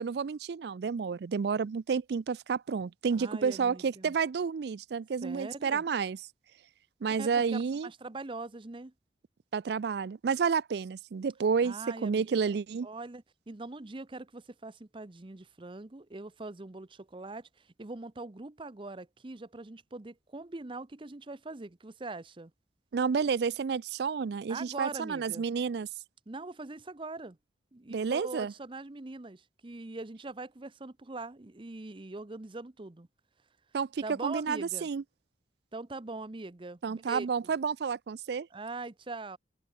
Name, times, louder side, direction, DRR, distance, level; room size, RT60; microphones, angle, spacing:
voice 1, 0.0-6.2 7.0-7.9 9.5-11.7 12.0-12.9 22.9-25.9 27.9-28.5 33.7-35.0 36.8-38.5, right 6 dB, 65° right, 0.4 m, -30 dB
voice 2, 3.2-4.2 5.2-5.8 7.1-8.9 11.6-12.5 12.8-22.5 24.5-25.5 26.3-27.4 27.7-33.1 34.0-34.9 35.7-37.5 38.5-39.4, right 3 dB, 30° right, 0.7 m, -42 dB
head